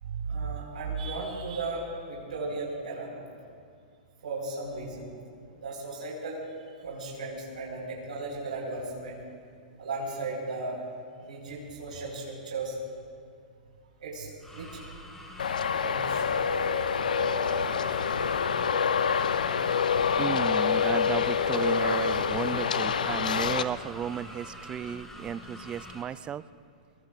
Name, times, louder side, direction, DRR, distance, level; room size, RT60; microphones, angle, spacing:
voice 1, 0.0-3.3 4.2-5.1 5.5-6.4 6.8-9.2 9.5-10.8 11.2-12.8 14.0-14.8 15.8-16.5 17.7-18.5, right 3 dB, 75° right, -3 dB, 4.6 m, -36 dB
sound 1, 14.4-26.0, left 1 dB, 10° left, 2.9 m, -46 dB
Traffic noise roadway noise, 15.4-23.6, left 6 dB, 80° left, 0.7 m, -26 dB
voice 2, 20.2-26.4, right 8 dB, 20° right, 17 dB, 0.4 m, -34 dB
23.0 x 21.5 x 2.5 m, 2.2 s
hypercardioid pair, 115°, 4 cm